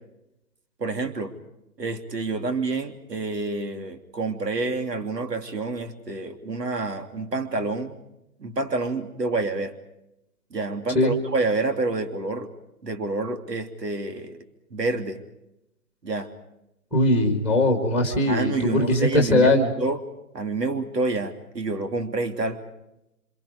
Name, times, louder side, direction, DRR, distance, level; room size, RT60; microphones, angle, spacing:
voice 1, 0.8-1.3 1.8-8.0 8.4-9.7 10.5-12.5 12.8-14.4 14.7-15.2 16.0-16.3 18.3-20.0 20.3-22.6, right 3 dB, 85° right, 7 dB, 3.2 m, -28 dB
voice 2, 16.9-19.7, left 1 dB, 5° right, 3 dB, 1.9 m, -20 dB
28.5 x 26.5 x 5.1 m, 0.87 s
hypercardioid pair, 160°, 48 cm